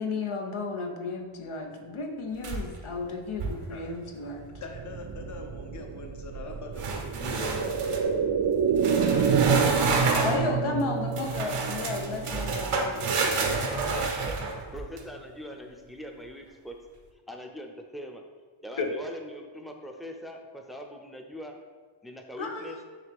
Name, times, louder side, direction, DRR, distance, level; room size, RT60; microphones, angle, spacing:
voice 1, 0.0-4.5 10.2-13.3 18.8-18.9 22.4-22.7, left 3 dB, 75° left, 3 dB, 0.9 m, -33 dB
sound 1, 2.4-2.9 3.3-3.7 6.8-8.0 8.8-10.4 11.2-15.0, right 4 dB, 90° right, 0.9 m, -29 dB
sound 2, 4.4-14.2 14.5-14.6, right 6 dB, 55° right, 0.5 m, -28 dB
voice 2, 4.6-8.1, left 3 dB, 35° left, 3 dB, 0.7 m, -42 dB
voice 3, 13.7-16.7 17.3-18.2 18.6-21.6 22.0-22.8, equal, ahead, 2 dB, 0.6 m, -42 dB
9.7 x 3.3 x 3.5 m, 1.5 s
wide cardioid pair, 105°, 50 cm